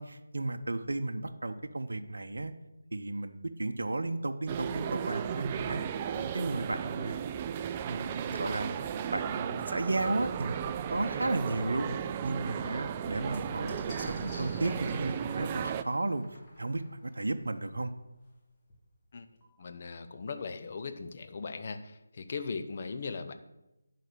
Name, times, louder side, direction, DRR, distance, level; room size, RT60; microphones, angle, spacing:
voice 1, 0.0-2.5 2.9-5.8 6.1-7.2 7.9-11.9 12.2-16.2 16.6-17.9, right 2 dB, 70° right, 7 dB, 0.7 m, -34 dB
sound 1, 4.5-15.8, right 9 dB, 20° right, 0.3 m, -35 dB
sound 2, 12.4-17.7 18.7-18.8 19.0-19.7, equal, 20° left, 2.4 m, -48 dB
voice 2, 19.6-23.3, left 4 dB, 40° left, 8 dB, 0.8 m, -39 dB
10.5 x 4.2 x 6.7 m, 0.96 s
figure-of-eight pair, 160°, 0 cm